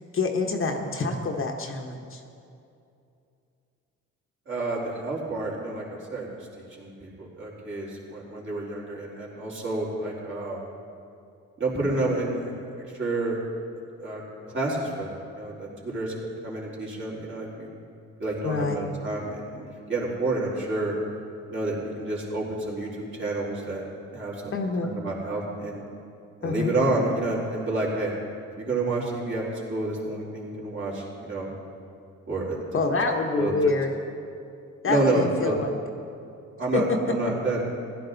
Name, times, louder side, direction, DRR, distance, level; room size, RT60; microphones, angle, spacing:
voice 1, 0.1-2.2 18.4-18.9 24.5-24.9 26.4-26.7 32.7-33.9 34.8-35.7 36.7-37.0, left 3 dB, 45° left, 2 dB, 1.2 m, -26 dB
voice 2, 4.5-10.6 11.6-13.4 14.0-16.1 16.4-17.7 18.2-21.0 21.5-23.8 24.1-24.5 24.8-25.8 26.4-28.2 28.6-31.5 32.3-32.6 33.4-33.5 34.9-35.6 36.6-37.6, right 2 dB, 40° right, -5 dB, 3.9 m, -29 dB
16.0 x 11.5 x 4.0 m, 2.5 s
cardioid pair, 90°, 30 cm